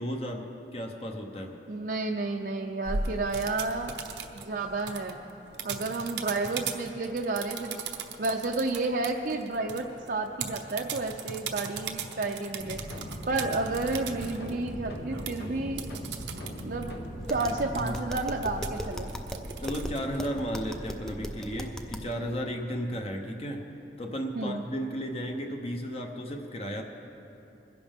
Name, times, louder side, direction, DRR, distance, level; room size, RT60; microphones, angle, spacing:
voice 1, 0.0-1.6 17.7-18.1 19.6-23.7 24.0-26.8, equal, 35° left, 3 dB, 0.8 m, -34 dB
voice 2, 1.7-4.0 4.4-5.2 5.6-7.8 8.2-12.8 13.3-15.9 16.6-16.9 17.3-19.1 24.3-24.6, right 3 dB, 55° right, 0 dB, 0.6 m, -31 dB
sound 1, 2.8-20.8, right 5 dB, 90° right, 0.8 m, -40 dB
sound 2, 12.6-17.7, equal, 70° left, 1.3 m, -39 dB
Tap, 17.2-22.1, equal, 5° left, 0.5 m, -38 dB
21.0 x 10.5 x 3.6 m, 2.8 s
head